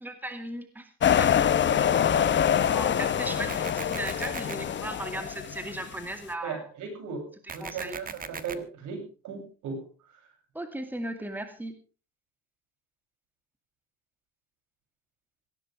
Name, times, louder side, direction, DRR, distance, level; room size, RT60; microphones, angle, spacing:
voice 1, 0.0-0.9 1.2-1.5 2.7-6.7 7.4-8.0 10.5-11.8, right 1 dB, 5° right, 7 dB, 2.3 m, -37 dB
sound 1, 1.0-6.0, left 9 dB, 35° left, 1.2 m, -25 dB
sound 2, 3.5-4.5 7.5-8.5, right 6 dB, 25° right, 1.5 m, -38 dB
voice 2, 6.4-9.8, right 5 dB, 70° right, 6 dB, 7.7 m, -37 dB
18.0 x 17.0 x 3.5 m, 0.34 s
cardioid pair, 120°, 31 cm